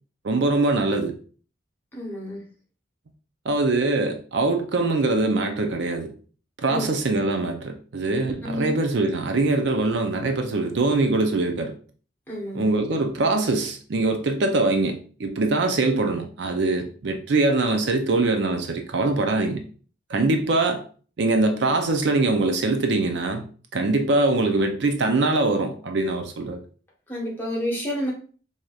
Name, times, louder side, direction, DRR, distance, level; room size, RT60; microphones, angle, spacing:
voice 1, 0.2-1.2 3.5-6.1 6.6-11.7 12.5-19.6 20.1-20.8 21.2-23.4 23.7-26.6, right 2 dB, 60° right, 0.5 m, -23 dB
voice 2, 1.9-2.4 6.7-6.8 8.4-8.7 12.3-12.7 27.1-28.1, equal, 10° left, 1.1 m, -29 dB
4.6 x 2.8 x 2.4 m
head